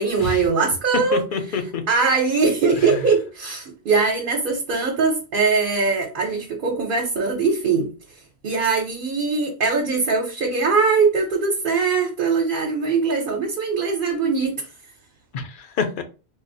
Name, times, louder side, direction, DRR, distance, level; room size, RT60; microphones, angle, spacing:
voice 1, 0.0-1.2 1.9-7.9 8.4-14.6, right 4 dB, 60° right, 0 dB, 0.8 m, -21 dB
voice 2, 1.1-1.8 2.8-3.0 15.3-16.0, left 5 dB, 60° left, 7 dB, 0.7 m, -27 dB
3.8 x 2.0 x 2.6 m, 0.32 s
omnidirectional pair, 1.1 m